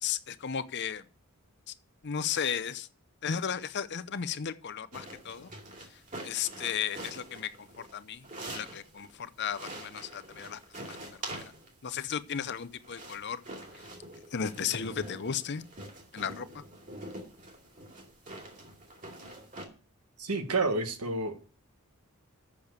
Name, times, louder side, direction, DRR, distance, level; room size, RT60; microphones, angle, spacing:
voice 1, 0.0-1.1 1.7-1.8 2.0-2.9 3.2-5.5 5.8-10.6 10.9-11.5 11.8-13.4 13.7-13.9 14.3-15.7 16.1-16.6, left 7 dB, 50° left, 0.6 m, -35 dB
sound 1, 4.9-9.1 9.5-11.8 12.5-19.6, right 1 dB, 35° right, 2.4 m, -45 dB
voice 2, 20.2-21.4, right 3 dB, 85° right, 1.5 m, -29 dB
7.2 x 6.9 x 8.0 m
head